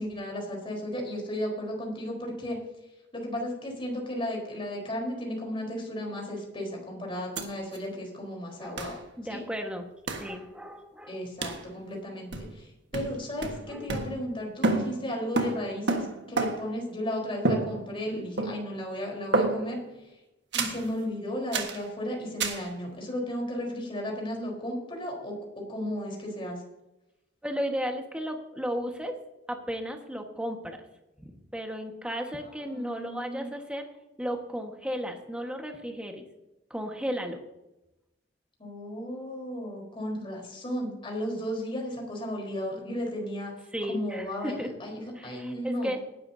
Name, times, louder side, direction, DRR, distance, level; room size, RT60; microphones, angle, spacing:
voice 1, 0.0-2.6 3.1-9.0 9.3-9.4 11.1-19.8 20.5-26.6 32.4-33.5 38.6-43.5 43.9-45.9, equal, 30° left, -1 dB, 4.1 m, -34 dB
sound 1, 7.4-7.5 7.7-7.8 8.8-9.0 10.1-10.3 11.4-11.7 12.3-12.7 12.9-14.4 14.6-16.8 17.4-18.1 18.4-18.8 19.3-19.8 20.5-20.9 21.5-21.8 22.4-22.7, right 2 dB, 65° right, 1.5 m, -30 dB
voice 2, 9.2-9.9 10.2-11.2 13.7-13.9 27.4-29.1 29.5-30.8 31.2-33.8 34.2-36.2 36.7-37.4 43.7-44.7 45.1-46.0, equal, 5° right, 3 dB, 1.5 m, -34 dB
18.5 x 11.0 x 2.8 m, 0.94 s
head